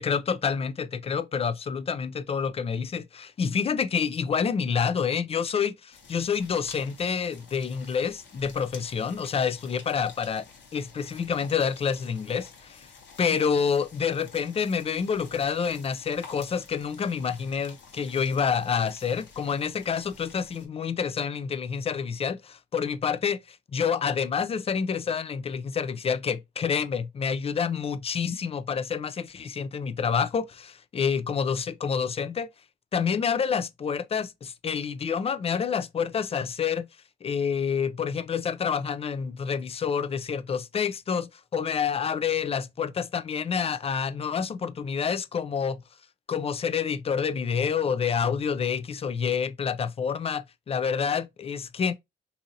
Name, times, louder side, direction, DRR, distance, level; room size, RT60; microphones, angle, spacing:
voice 1, 0.0-10.5 10.7-12.9 13.2-32.5 32.9-36.9 37.2-45.8 46.3-51.9, left 6 dB, 30° left, 0.4 m, -28 dB
sound 1, 5.9-20.7, left 5 dB, 65° left, 1.2 m, -50 dB
2.7 x 2.7 x 3.8 m
cardioid pair, 90°, 20 cm